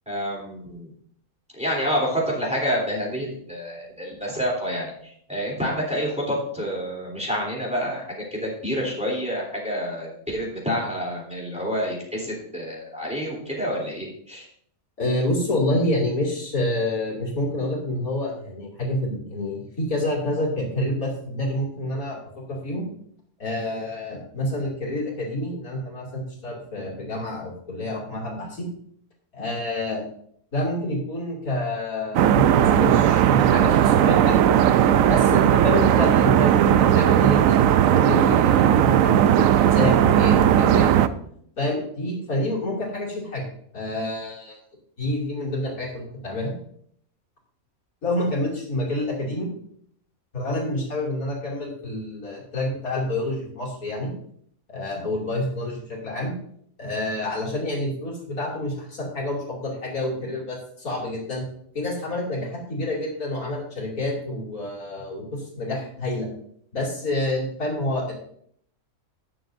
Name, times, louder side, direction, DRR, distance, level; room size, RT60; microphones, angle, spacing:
voice 1, 0.0-0.9 1.5-14.5, equal, 5° right, -3 dB, 3.4 m, -28 dB
voice 2, 15.0-22.9 23.4-28.7 29.3-30.1 30.5-34.6 35.1-41.1 41.6-43.4 43.7-44.6 45.0-46.5 48.0-49.5 50.3-54.1 54.7-56.3 56.8-61.4 61.7-66.3 66.7-68.1, left 1 dB, 75° left, -3 dB, 3.3 m, -28 dB
sound 1, 32.1-41.1, right 10 dB, 70° right, 0.9 m, -17 dB
18.5 x 6.9 x 2.6 m, 0.66 s
omnidirectional pair, 1.5 m